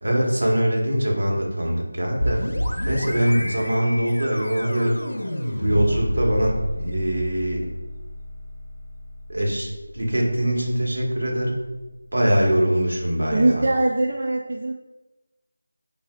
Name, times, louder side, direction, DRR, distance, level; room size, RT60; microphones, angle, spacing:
voice 1, 0.0-2.5 2.9-5.0 5.6-7.7 9.3-9.7 9.9-11.6 12.1-13.6, equal, 75° right, -1 dB, 1.4 m, -22 dB
sound 1, 2.2-11.8, equal, 90° left, 0.6 m, -31 dB
voice 2, 13.3-14.7, right 2 dB, 45° right, -1 dB, 0.4 m, -21 dB
7.9 x 2.7 x 2.4 m, 1.1 s
figure-of-eight pair, 175°, 0 cm